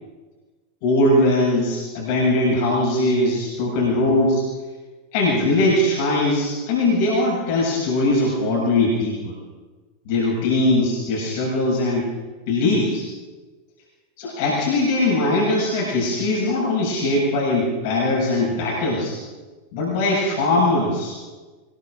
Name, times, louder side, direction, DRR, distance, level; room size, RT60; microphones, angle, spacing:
voice 1, 0.8-4.4 5.1-9.3 10.1-12.1 12.5-13.1 14.2-19.2 19.7-21.2, left 2 dB, 50° left, -4 dB, 7.7 m, -20 dB
24.5 x 22.0 x 5.2 m, 1.3 s
figure-of-eight pair, 90°, 0 cm